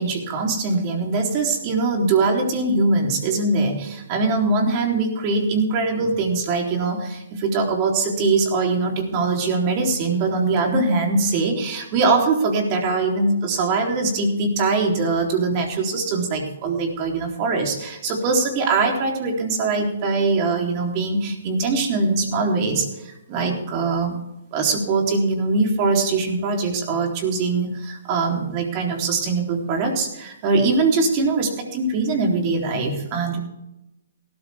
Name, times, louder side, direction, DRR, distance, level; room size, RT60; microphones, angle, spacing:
voice 1, 0.0-24.2 24.5-33.4, right 3 dB, 35° right, 1 dB, 3.7 m, -22 dB
18.5 x 13.0 x 3.6 m, 0.90 s
figure-of-eight pair, 130°, 0 cm